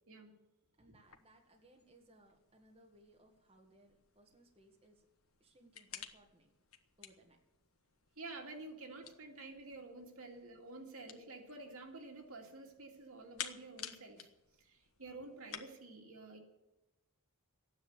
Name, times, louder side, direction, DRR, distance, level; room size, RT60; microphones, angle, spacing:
voice 1, 0.1-0.4 8.2-14.3 14.6-16.4, right 2 dB, 75° right, 2 dB, 2.6 m, -50 dB
voice 2, 0.8-5.1 5.4-6.6 7.0-7.4 10.3-10.4, right 1 dB, 25° right, 1 dB, 1.8 m, -65 dB
sound 1, 1.0-15.6, left 8 dB, 70° left, 1.3 m, -54 dB
14.0 x 10.0 x 8.1 m, 0.96 s
head